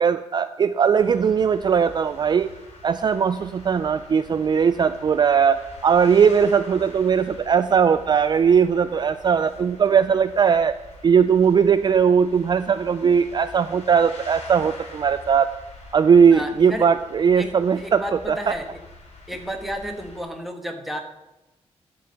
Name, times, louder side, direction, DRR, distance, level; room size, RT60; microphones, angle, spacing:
voice 1, 0.0-2.5 2.8-10.7 11.0-15.5 15.9-18.0 18.3-18.5, right 7 dB, 40° right, 11 dB, 0.3 m, -19 dB
sound 1, 1.0-20.2, left 2 dB, 75° left, 3.2 m, -45 dB
voice 2, 16.3-16.9 17.3-17.5 17.8-18.7 19.3-21.0, equal, ahead, 3 dB, 1.3 m, -32 dB
12.0 x 5.2 x 6.8 m, 1.0 s
wide cardioid pair, 130°, 11 cm